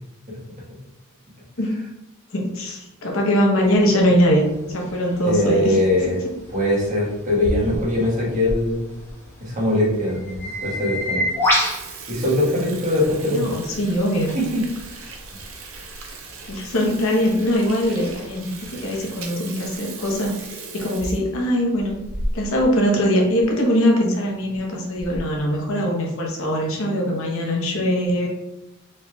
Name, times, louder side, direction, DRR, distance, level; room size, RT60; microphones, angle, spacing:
voice 1, 2.3-5.8 13.3-14.3 16.5-22.0 22.3-28.3, equal, 75° left, -1 dB, 0.8 m, -21 dB
sound 1, 3.6-12.9 13.3-19.2, equal, 10° left, 1.1 m, -31 dB
voice 2, 5.2-6.2 6.5-8.8 9.4-11.3 12.1-13.4 14.3-14.6 14.9-15.1, left 1 dB, 40° right, -6 dB, 1.3 m, -21 dB
Water tap faucet / Sink (filling or washing), 7.4-8.6 9.1-9.2 9.9-10.0 10.3-10.4 10.8-11.0 11.3-22.7 23.0-23.1 23.4-23.5 24.3-24.6 25.0-25.4, right 1 dB, 75° right, 0.6 m, -35 dB
4.0 x 3.2 x 2.3 m, 0.94 s
head